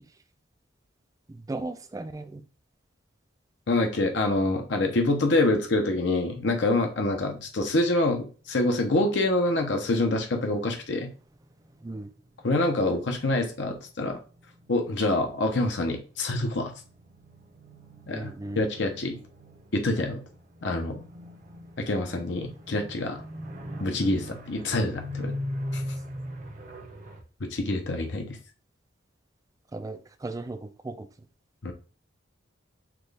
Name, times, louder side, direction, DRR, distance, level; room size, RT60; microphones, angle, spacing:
voice 1, 1.3-2.4 11.8-12.1 18.1-18.6 29.7-31.1, right 2 dB, 20° right, 0.3 m, -36 dB
voice 2, 3.7-11.1 12.4-14.2 14.7-16.7 18.1-19.2 19.7-20.2 20.6-21.0 21.8-23.2 23.8-25.3 25.7-25.8 27.4-28.4 31.6-31.7, left 2 dB, 65° left, 0.7 m, -26 dB
sound 1, 7.5-10.4 10.7-27.2, left 1 dB, 40° right, 0.7 m, -41 dB
5.9 x 2.3 x 3.3 m
head